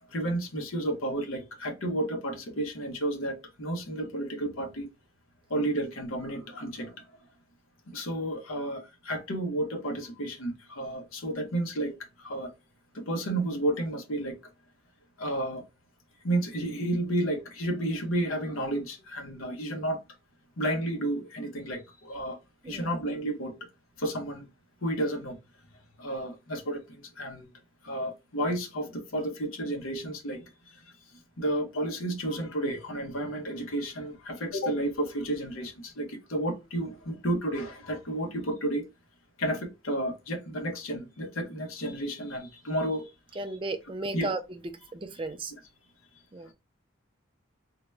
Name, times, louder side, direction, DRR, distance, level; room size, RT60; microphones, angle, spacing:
voice 1, 0.1-4.9 5.5-7.1 7.9-12.5 12.9-14.4 15.2-15.6 16.2-20.0 20.6-22.4 22.6-23.6 24.0-24.5 24.8-25.4 26.0-27.5 27.8-30.8 31.4-38.8 39.4-43.1 44.1-44.3, right 1 dB, 80° left, 0.9 m, -32 dB
voice 2, 43.4-44.4 44.9-45.5 46.3-46.5, right 2 dB, 25° right, 0.4 m, -34 dB
3.8 x 2.2 x 3.2 m
head